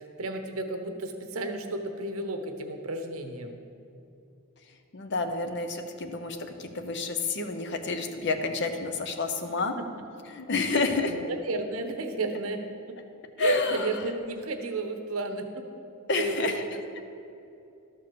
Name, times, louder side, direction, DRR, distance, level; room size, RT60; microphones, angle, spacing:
voice 1, 0.0-3.6 9.6-9.9 10.7-12.6 12.9-13.0 13.4-15.7 16.1-17.0, right 2 dB, 90° right, 6 dB, 0.9 m, -33 dB
voice 2, 4.9-9.8 10.3-11.1 13.4-13.8 16.1-16.6, left 3 dB, 55° left, 7 dB, 0.8 m, -29 dB
12.0 x 4.6 x 6.7 m, 2.8 s
head